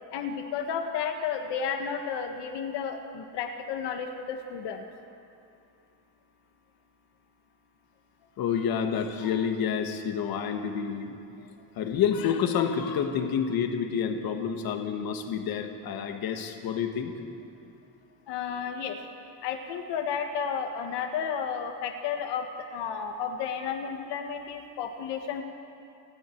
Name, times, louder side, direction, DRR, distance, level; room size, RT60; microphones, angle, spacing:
voice 1, 0.1-4.8 18.3-19.0 19.4-25.4, left 7 dB, 75° left, 5 dB, 1.6 m, -32 dB
voice 2, 8.4-11.2 11.7-17.1, left 7 dB, 55° left, 5 dB, 1.7 m, -28 dB
29.5 x 19.5 x 4.6 m, 2.6 s
cardioid pair, 160°, 42 cm